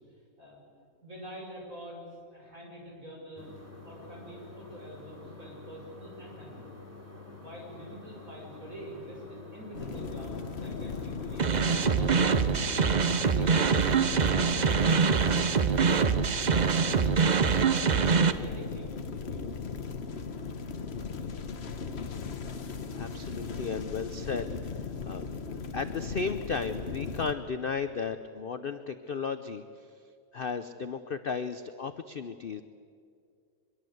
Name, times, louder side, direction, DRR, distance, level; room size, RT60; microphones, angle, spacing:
voice 1, 1.0-3.5 3.8-6.8 7.4-12.5 13.1-14.7 15.1-17.2 17.4-19.5, equal, 45° right, -2 dB, 6.9 m, -46 dB
sound 1, 3.4-14.1, left 3 dB, 10° right, 3.7 m, -48 dB
sound 2, 9.7-27.3, left 5 dB, 40° left, 1.2 m, -37 dB
sound 3, 11.4-18.3, right 6 dB, 70° right, 0.4 m, -24 dB
voice 2, 22.9-24.7 25.1-29.6 30.3-32.6, left 5 dB, 55° left, 10 dB, 0.6 m, -34 dB
24.5 x 22.5 x 7.9 m, 2.4 s
omnidirectional pair, 1.9 m